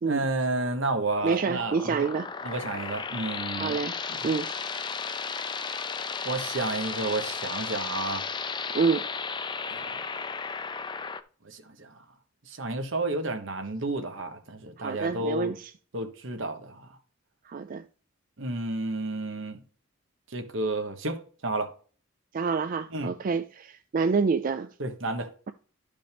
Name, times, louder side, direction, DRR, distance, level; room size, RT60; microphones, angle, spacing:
voice 1, 0.0-2.1 2.4-3.8 4.1-4.2 6.2-8.2 9.7-10.0 11.4-11.9 12.5-15.5 15.9-16.9 18.4-19.6 20.3-21.7 22.9-23.1 24.8-25.3, right 2 dB, 70° right, 1.2 m, -31 dB
sound 1, 1.2-11.2, left 5 dB, 25° left, 0.5 m, -34 dB
voice 2, 1.2-2.3 3.6-3.9 4.2-4.5 8.7-9.0 14.8-15.7 17.5-17.8 22.3-24.7, right 5 dB, 45° right, 0.4 m, -27 dB
12.0 x 5.2 x 3.5 m
head